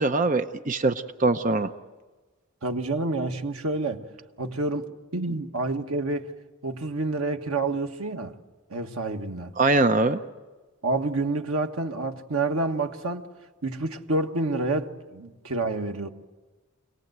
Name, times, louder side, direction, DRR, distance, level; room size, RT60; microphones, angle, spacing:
voice 1, 0.0-1.7 9.6-10.2, right 3 dB, 35° right, 0.7 m, -22 dB
voice 2, 2.6-4.0 4.4-6.3 6.6-8.3 8.7-9.5 10.8-13.3 13.6-16.1, right 2 dB, 85° right, 1.4 m, -28 dB
26.5 x 18.5 x 7.9 m
head